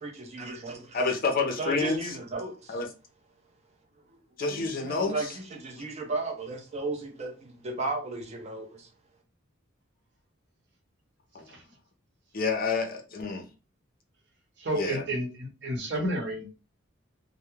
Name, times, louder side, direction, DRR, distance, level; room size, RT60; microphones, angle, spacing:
voice 1, 0.0-1.0 1.6-2.8 4.5-8.9, right 3 dB, 30° right, 0.5 m, -35 dB
voice 2, 0.9-2.1 2.7-2.9 4.4-5.3 11.3-11.4 12.3-13.4 14.7-15.0, left 4 dB, 45° left, 0.5 m, -28 dB
voice 3, 14.6-16.6, right 1 dB, 55° right, 0.9 m, -31 dB
2.2 x 2.0 x 3.0 m
head